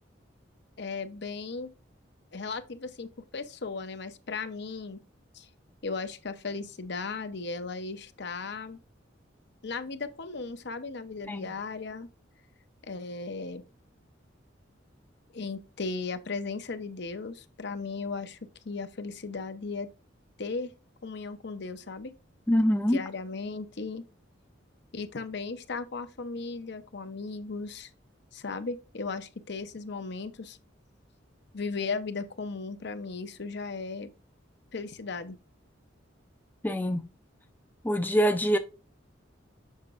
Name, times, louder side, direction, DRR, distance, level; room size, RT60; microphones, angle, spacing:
voice 1, 0.8-1.7 2.3-5.0 5.3-5.5 5.8-8.8 9.6-12.1 12.8-13.6 15.3-18.4 18.6-19.9 20.4-20.7 21.0-22.1 22.8-24.0 24.9-27.9 28.3-30.6 31.5-34.1 34.7-35.4, left 4 dB, 60° left, 0.8 m, -36 dB
voice 2, 22.5-23.0 36.6-37.0 37.8-38.6, equal, 10° left, 0.5 m, -24 dB
7.3 x 5.8 x 2.5 m
head